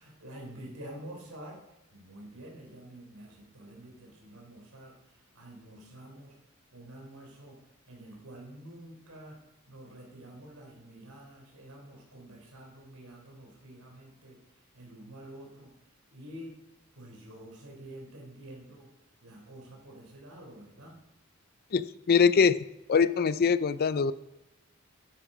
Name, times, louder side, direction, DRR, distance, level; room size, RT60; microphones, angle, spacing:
voice 1, 0.0-1.6 1.9-6.4 6.7-7.6 7.9-9.4 9.7-16.6 16.9-18.9 19.2-21.0, right 1 dB, 85° right, 1 dB, 3.7 m, -48 dB
voice 2, 21.7-22.6 22.9-24.1, left 6 dB, 45° left, 15 dB, 0.4 m, -23 dB
11.5 x 9.7 x 5.1 m, 0.95 s
head